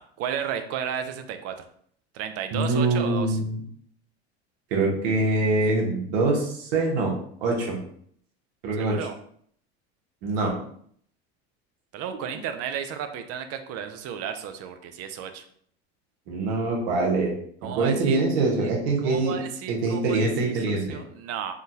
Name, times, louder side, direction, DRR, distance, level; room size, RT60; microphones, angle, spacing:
voice 1, 0.0-1.7 2.1-3.4 8.8-9.1 11.9-15.4 17.6-18.2 18.6-18.7 19.0-20.2 20.5-21.5, right 8 dB, 50° right, 8 dB, 0.5 m, -33 dB
voice 2, 2.5-3.6 4.7-7.1 7.4-7.8 8.6-9.0 10.2-10.5 16.3-17.3 17.8-19.3 19.7-21.0, right 2 dB, 75° right, -1 dB, 1.1 m, -24 dB
3.6 x 2.3 x 2.7 m, 0.63 s
supercardioid pair, 100°, 32 cm